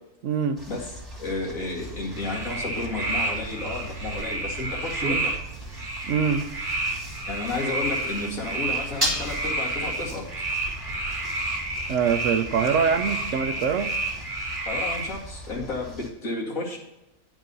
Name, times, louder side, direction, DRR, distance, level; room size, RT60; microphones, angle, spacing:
voice 1, 0.2-0.6 5.0-5.2 6.1-6.4 11.9-13.9, right 6 dB, 65° right, 9 dB, 1.0 m, -24 dB
sound 1, 0.6-16.1, right 1 dB, 15° right, 2.0 m, -38 dB
voice 2, 1.2-5.4 7.3-10.2 14.7-16.8, left 3 dB, 85° left, -1 dB, 2.6 m, -32 dB
sound 2, 1.8-15.1, right 2 dB, 40° right, 1.4 m, -30 dB
10.5 x 4.9 x 5.4 m, 0.93 s
omnidirectional pair, 1.4 m